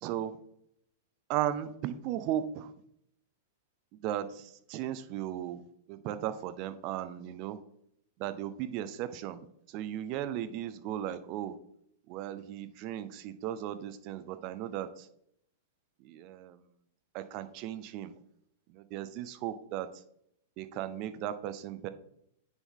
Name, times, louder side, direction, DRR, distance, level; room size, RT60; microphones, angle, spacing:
voice 1, 0.0-0.3 1.3-2.7 4.0-7.6 8.2-9.4 9.7-11.5 12.1-15.1 16.0-16.6 17.1-18.1 18.7-19.9 20.6-21.9, right 11 dB, 45° right, 12 dB, 0.6 m, -36 dB
9.8 x 3.6 x 3.8 m, 0.71 s
hypercardioid pair, 105°, 0 cm